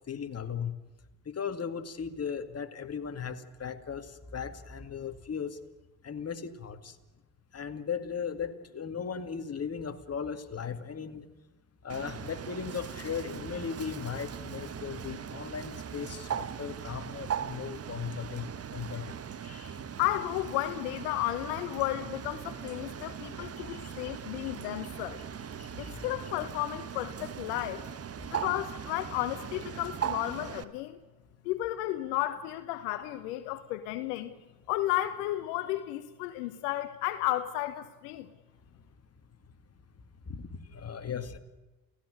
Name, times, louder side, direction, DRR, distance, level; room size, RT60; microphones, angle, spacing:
voice 1, 0.1-0.7 1.3-5.6 6.0-6.9 7.5-11.3 11.8-18.5 18.7-19.1 19.4-19.8 23.7-23.8 25.6-26.0 28.4-28.5 40.3-41.4, left 7 dB, 30° left, 7 dB, 2.3 m, -37 dB
Bird, 11.9-30.6, right 8 dB, 30° right, 1.2 m, -39 dB
voice 2, 20.0-25.2 25.8-27.9 28.3-31.0 31.4-34.3 34.7-38.3, left 15 dB, 75° left, 11 dB, 1.2 m, -33 dB
29.0 x 17.0 x 6.6 m, 1.1 s
hypercardioid pair, 65°, 46 cm